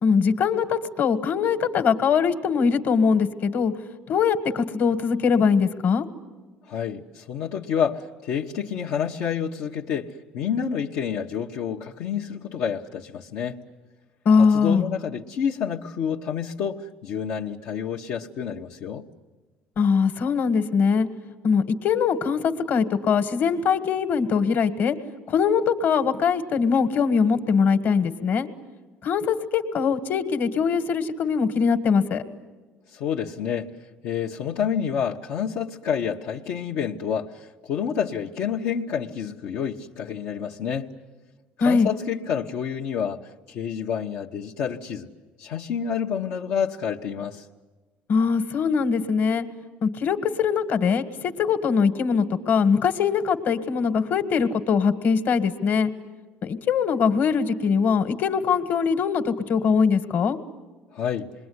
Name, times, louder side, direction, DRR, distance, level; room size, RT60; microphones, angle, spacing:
voice 1, 0.0-3.7 4.1-6.1 14.3-14.8 19.8-21.1 21.4-25.0 25.3-28.5 29.0-32.2 41.6-41.9 48.1-49.5 49.8-55.9 56.4-60.4, left 6 dB, 50° left, 10 dB, 1.8 m, -22 dB
voice 2, 6.7-13.6 14.4-19.0 32.9-33.7 34.0-40.9 41.6-45.1 45.4-47.4 60.9-61.3, left 7 dB, 75° left, -2 dB, 1.2 m, -28 dB
27.5 x 21.5 x 9.7 m, 1.3 s
cardioid pair, 125°, 4 cm